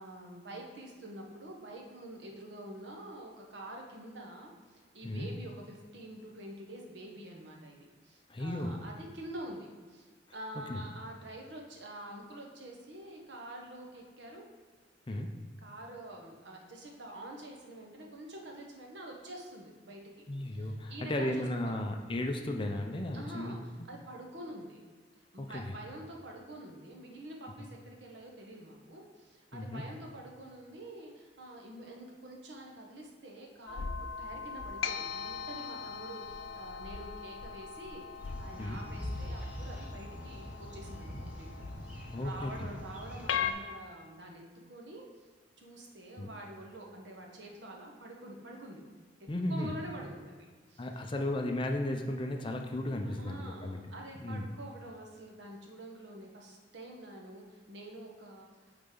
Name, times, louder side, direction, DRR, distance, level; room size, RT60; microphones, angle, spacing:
voice 1, 0.0-7.8 8.0-14.5 15.6-20.3 20.5-21.8 23.1-24.8 25.3-38.1 38.4-45.0 45.6-48.8 49.5-51.0 53.0-58.8, right 1 dB, 65° right, 0 dB, 1.1 m, -47 dB
voice 2, 8.3-8.8 10.7-10.9 15.1-15.3 20.3-23.6 25.4-25.7 29.5-29.8 38.6-38.8 42.1-42.7 46.2-46.3 49.3-49.7 50.8-53.9 54.2-54.5, left 1 dB, 25° left, 4 dB, 0.5 m, -35 dB
sound 1, 33.7-43.5, left 7 dB, 85° left, 0.4 m, -40 dB
sound 2, 38.2-43.5, equal, 10° right, 1.0 m, -43 dB
8.8 x 4.0 x 3.8 m, 1.4 s
head